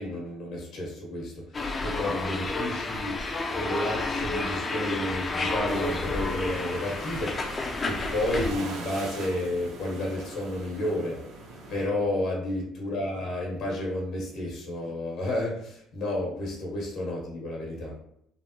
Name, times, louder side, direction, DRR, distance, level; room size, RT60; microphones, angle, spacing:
voice 1, 0.0-3.2 3.5-7.5 7.8-11.2 11.7-17.9, left 1 dB, 70° left, -2 dB, 1.1 m, -31 dB
sound 1, 1.5-8.5, left 2 dB, 30° left, 0.4 m, -30 dB
sound 2, 5.6-11.9, right 2 dB, 75° right, 0.9 m, -42 dB
3.2 x 2.1 x 2.8 m, 0.75 s
cardioid pair, 100°, 0 cm